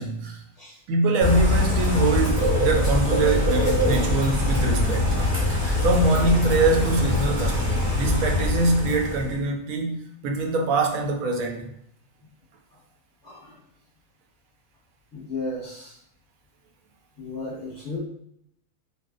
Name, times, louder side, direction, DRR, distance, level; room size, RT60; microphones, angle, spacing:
voice 1, 0.0-0.4 0.9-5.2 5.8-11.7, right 2 dB, 75° right, 3 dB, 1.0 m, -24 dB
Bird / Rain, 1.2-9.4, left 1 dB, 15° right, 1.0 m, -23 dB
voice 2, 15.1-15.9 17.2-18.0, left 2 dB, 15° left, -8 dB, 0.9 m, -34 dB
2.6 x 2.3 x 3.6 m, 0.71 s
omnidirectional pair, 1.5 m